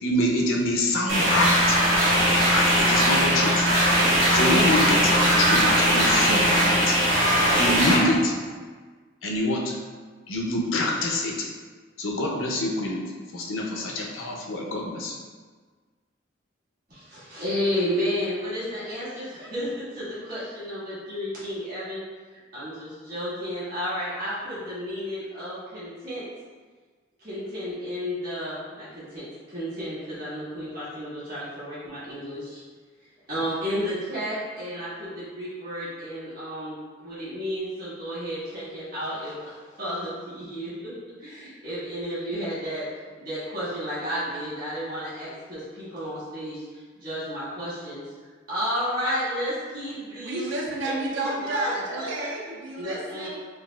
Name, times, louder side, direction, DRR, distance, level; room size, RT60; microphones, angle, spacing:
voice 1, 0.0-1.8 2.5-3.7 4.3-7.0 7.5-8.4 9.2-9.8 10.3-11.5 12.0-13.0 13.3-15.2, left 1 dB, 85° left, 0 dB, 0.6 m, -26 dB
sound 1, 1.1-7.9, right 1 dB, 85° right, 1.3 m, -20 dB
sound 2, 1.3-8.2, left 1 dB, 35° left, 0.4 m, -30 dB
voice 2, 16.9-22.0 22.5-26.2 27.2-29.2 29.5-32.6 33.3-40.9 41.2-42.8 43.2-46.6 47.0-48.0 48.5-50.5 50.8-52.3 52.7-53.3, equal, 45° right, -12 dB, 1.5 m, -32 dB
voice 3, 50.2-53.3, right 2 dB, 70° right, -1 dB, 0.4 m, -31 dB
3.9 x 2.4 x 2.3 m, 1.5 s
head